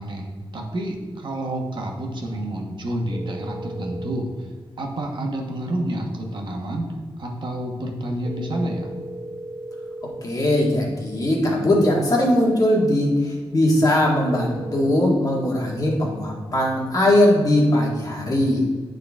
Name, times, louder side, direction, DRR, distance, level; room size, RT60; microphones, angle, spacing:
voice 1, 0.0-4.5 4.8-6.9 7.2-8.9, right 1 dB, 55° right, 0 dB, 1.1 m, -29 dB
sound 1, 3.1-4.2 8.2-10.2 14.2-15.1, right 2 dB, 30° right, 0.4 m, -36 dB
voice 2, 10.2-18.6, left 1 dB, 40° left, -2 dB, 1.7 m, -20 dB
9.3 x 3.9 x 3.6 m, 1.5 s
wide cardioid pair, 105°, 10 cm